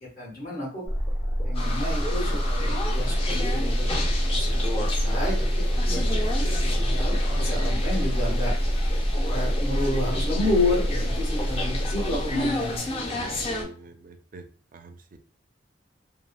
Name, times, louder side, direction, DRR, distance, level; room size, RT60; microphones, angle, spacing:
voice 1, 0.2-0.8 1.4-5.5 5.7-6.3 6.6-6.7 6.9-8.6 9.3-13.4, left 2 dB, 50° left, -8 dB, 1.2 m, -31 dB
sound 1, 0.8-12.8, equal, 90° left, 1.1 m, -26 dB
sound 2, 1.5-13.6, left 1 dB, 30° left, 0.6 m, -32 dB
voice 2, 13.1-14.4 14.7-15.2, right 3 dB, 50° right, 7 dB, 0.4 m, -45 dB
2.9 x 2.7 x 2.3 m, 0.40 s
head